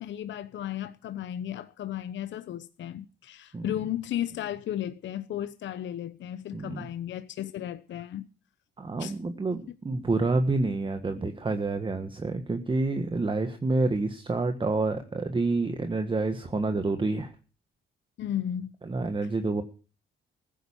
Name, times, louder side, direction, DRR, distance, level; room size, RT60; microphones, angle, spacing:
voice 1, 0.0-8.3 9.0-9.1 18.2-18.7 19.2-19.3, left 11 dB, 65° left, 0.9 m, -34 dB
voice 2, 6.5-6.9 8.8-17.3 18.9-19.6, right 3 dB, 25° right, 1.5 m, -28 dB
15.5 x 9.4 x 7.3 m
cardioid pair, 90°, 20 cm